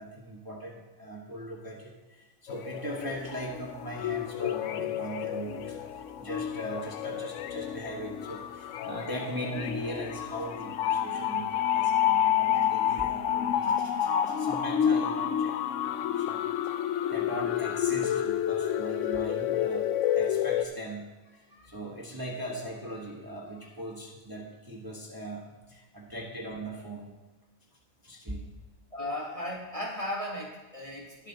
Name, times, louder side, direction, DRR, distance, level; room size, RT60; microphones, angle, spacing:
voice 1, 0.0-5.8 6.2-16.5 17.1-19.8 20.1-27.1 28.0-28.5, right 1 dB, 15° right, -1 dB, 1.2 m, -40 dB
sound 1, 2.5-20.7, left 10 dB, 65° left, 0.8 m, -29 dB
voice 2, 28.9-31.3, left 1 dB, 25° left, -2 dB, 1.3 m, -36 dB
19.5 x 7.3 x 2.9 m, 1.2 s
omnidirectional pair, 1.6 m